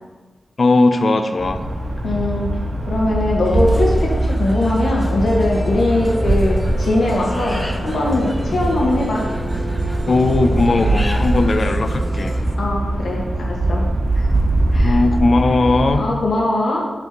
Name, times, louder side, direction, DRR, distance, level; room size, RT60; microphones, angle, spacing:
voice 1, 0.6-1.6 10.1-12.3 14.8-16.0, left 3 dB, 45° left, 8 dB, 0.5 m, -17 dB
sound 1, 1.4-16.0, right 1 dB, 65° right, 1.0 m, -21 dB
voice 2, 2.0-2.5 2.9-9.2 12.6-13.8 14.1-14.3 14.7-15.0 16.0-16.8, left 2 dB, 70° left, -3 dB, 1.7 m, -21 dB
sound 2, 3.4-12.6, equal, 10° left, 0.7 m, -31 dB
Musical instrument, 6.0-12.4, right 1 dB, 20° right, 1.3 m, -33 dB
7.0 x 5.9 x 3.1 m, 1.2 s
wide cardioid pair, 135°, 0 cm